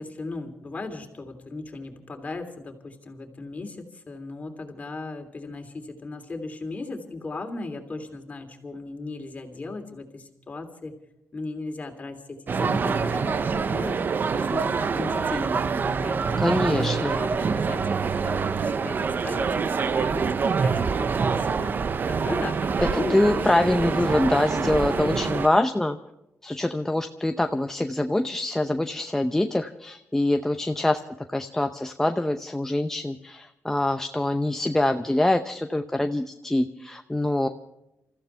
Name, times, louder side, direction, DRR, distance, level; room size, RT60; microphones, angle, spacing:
voice 1, 0.0-10.9 11.3-14.0 14.3-21.7 22.1-23.5 23.8-23.9 24.6-25.3, left 3 dB, 30° left, 4 dB, 3.1 m, -37 dB
sound 1, 12.5-25.5, right 5 dB, 45° right, 0.7 m, -26 dB
voice 2, 16.4-17.2 22.8-26.0 26.4-37.5, left 1 dB, 10° left, 5 dB, 0.7 m, -24 dB
28.5 x 15.0 x 3.4 m, 0.89 s
cardioid pair, 120°, 5 cm